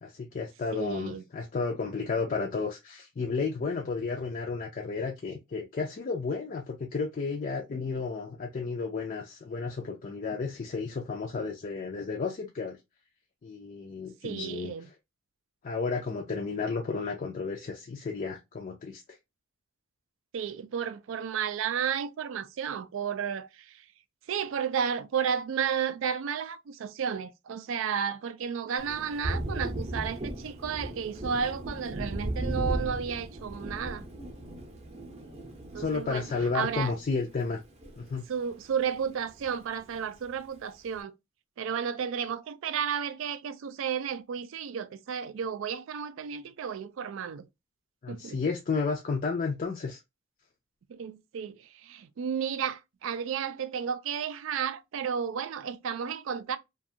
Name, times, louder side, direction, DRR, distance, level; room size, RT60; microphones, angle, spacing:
voice 1, 0.0-12.8 13.4-14.9 15.6-19.0 35.8-37.6 38.0-38.2 48.0-50.0, left 4 dB, 40° left, 0.4 m, -32 dB
voice 2, 0.7-1.2 14.2-14.9 20.3-23.8 24.3-34.0 35.7-36.3 36.5-36.9 38.3-41.1 41.6-47.5 48.1-48.4 50.9-56.6, right 7 dB, 70° right, 0.3 m, -32 dB
Thunder, 28.8-38.5 38.9-40.0, right 1 dB, 30° right, 0.6 m, -37 dB
2.5 x 2.3 x 2.7 m
head